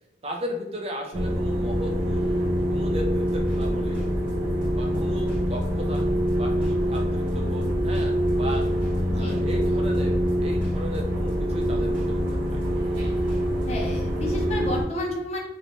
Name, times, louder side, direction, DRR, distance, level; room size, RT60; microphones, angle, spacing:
voice 1, 0.2-2.3 2.7-4.0 4.8-6.1 6.4-8.7 9.1-12.6, equal, 35° right, 1 dB, 0.4 m, -36 dB
sound 1, 1.1-14.8, equal, 50° right, 0.8 m, -25 dB
sound 2, 3.2-14.5, equal, 10° right, 0.9 m, -41 dB
voice 2, 9.0-9.4 13.6-15.4, left 2 dB, 35° left, 0 dB, 0.5 m, -31 dB
3.0 x 2.1 x 2.5 m, 0.92 s
head